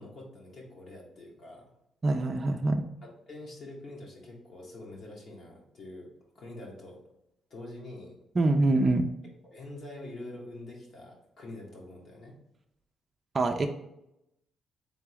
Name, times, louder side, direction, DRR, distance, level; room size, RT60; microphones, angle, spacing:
voice 1, 0.0-1.7 3.3-7.0 7.5-8.2 9.5-12.4, left 2 dB, 55° left, -2 dB, 1.4 m, -45 dB
voice 2, 2.0-2.8 8.3-9.1 13.3-13.7, right 2 dB, 35° right, 3 dB, 0.4 m, -25 dB
3.7 x 3.5 x 3.4 m, 0.83 s
cardioid pair, 90°, 0 cm